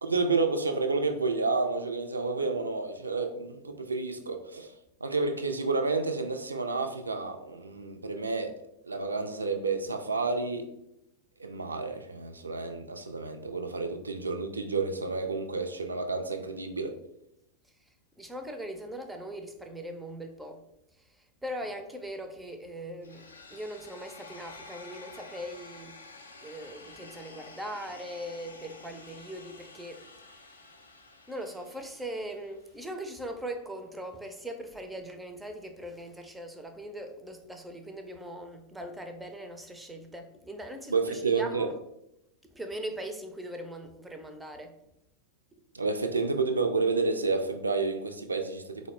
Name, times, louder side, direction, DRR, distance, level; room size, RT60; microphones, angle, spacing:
voice 1, 0.0-4.7 5.0-8.5 8.8-10.6 11.4-16.9 40.9-41.7 45.7-48.9, right 4 dB, 75° right, 0.3 m, -30 dB
voice 2, 17.6-20.6 20.9-26.0 26.4-30.1 31.3-41.7 42.5-44.8, right 1 dB, 5° right, 0.4 m, -40 dB
sound 1, 23.0-33.0, left 3 dB, 75° left, 0.4 m, -50 dB
3.9 x 2.0 x 3.0 m
figure-of-eight pair, 90°, 0 cm